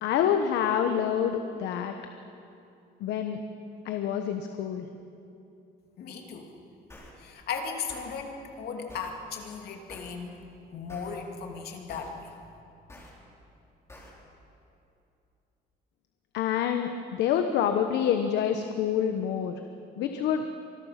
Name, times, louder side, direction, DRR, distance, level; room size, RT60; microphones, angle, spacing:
voice 1, 0.0-1.9 3.0-3.4 3.8-4.9 16.3-19.6 20.0-20.4, left 8 dB, 90° left, 6 dB, 1.2 m, -27 dB
voice 2, 6.0-6.5 7.2-10.4 10.7-12.3, left 5 dB, 65° left, 3 dB, 2.7 m, -37 dB
sound 1, 6.9-7.1 7.9-8.1 8.9-9.1 9.9-10.1 10.9-11.1 11.9-12.1 12.9-13.1 13.9-14.1, left 1 dB, 15° left, 4.4 m, -48 dB
26.0 x 20.5 x 5.9 m, 2.7 s
cardioid pair, 145°, 17 cm